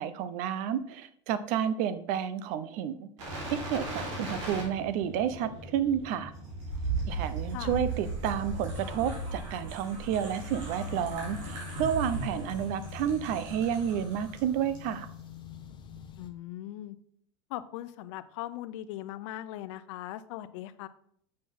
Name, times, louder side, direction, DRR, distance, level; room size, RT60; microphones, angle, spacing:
voice 1, 0.0-3.1 3.5-6.3 7.1-15.1, right 9 dB, 60° right, 13 dB, 0.7 m, -31 dB
sound 1, 3.2-14.4 14.7-14.9, right 2 dB, 80° right, 3.4 m, -37 dB
sound 2, 10.9-16.3, left 9 dB, 30° left, 0.8 m, -46 dB
voice 2, 16.2-17.0 17.5-20.9, left 14 dB, 70° left, 13 dB, 0.6 m, -39 dB
7.6 x 6.1 x 3.6 m, 0.66 s
supercardioid pair, 110°, 16 cm